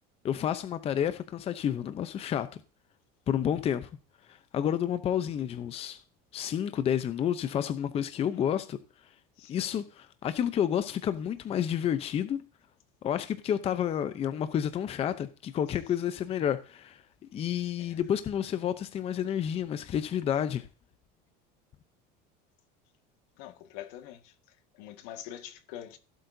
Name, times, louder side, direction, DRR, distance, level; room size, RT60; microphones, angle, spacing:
voice 1, 0.2-2.5 3.3-3.9 4.3-6.0 6.3-8.8 9.5-12.4 13.0-17.0 17.3-20.7, left 9 dB, 30° left, 0.6 m, -30 dB
voice 2, 9.4-9.8 17.8-18.0 19.8-19.9 23.4-26.0, left 11 dB, 80° left, 1.8 m, -45 dB
16.5 x 7.8 x 2.7 m
cardioid pair, 145°, 20 cm